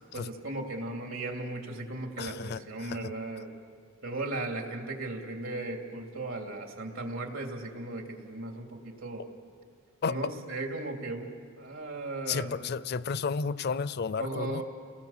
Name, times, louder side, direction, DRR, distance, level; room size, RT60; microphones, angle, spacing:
voice 1, 0.1-3.5 4.0-9.3 10.1-11.3 11.6-12.7 14.2-14.6, right 2 dB, 90° right, 3 dB, 3.0 m, -36 dB
voice 2, 2.2-3.1 10.0-10.3 12.3-14.6, left 5 dB, 55° left, 17 dB, 0.5 m, -32 dB
29.5 x 19.5 x 7.3 m, 2.1 s
head